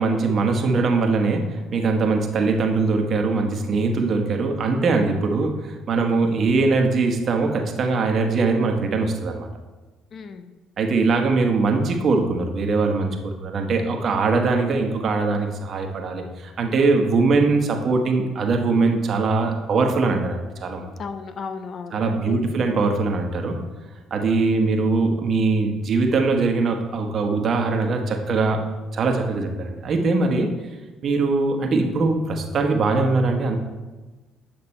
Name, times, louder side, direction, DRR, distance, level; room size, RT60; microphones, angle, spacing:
voice 1, 0.0-9.5 10.8-20.9 21.9-23.6 24.1-28.6 28.9-30.5 31.0-33.6, right 3 dB, 50° right, 4 dB, 1.2 m, -21 dB
voice 2, 10.1-10.5 21.0-22.6, left 5 dB, 50° left, 9 dB, 0.6 m, -35 dB
8.8 x 5.8 x 4.3 m, 1.2 s
supercardioid pair, 85°, 0 cm